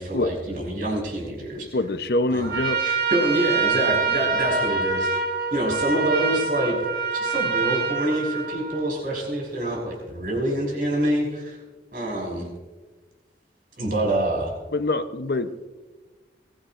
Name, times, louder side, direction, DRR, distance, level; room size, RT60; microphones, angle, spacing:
voice 1, 0.0-1.7 2.3-2.5 2.8-5.2 5.5-6.8 7.1-11.6 11.9-12.5 13.8-14.5, right 1 dB, 55° right, -1 dB, 6.0 m, -26 dB
voice 2, 1.7-2.8 14.7-15.6, left 2 dB, 65° left, 11 dB, 0.7 m, -25 dB
Trumpet, 2.4-8.9, right 5 dB, 80° right, 4.7 m, -25 dB
23.5 x 15.5 x 2.5 m, 1.3 s
head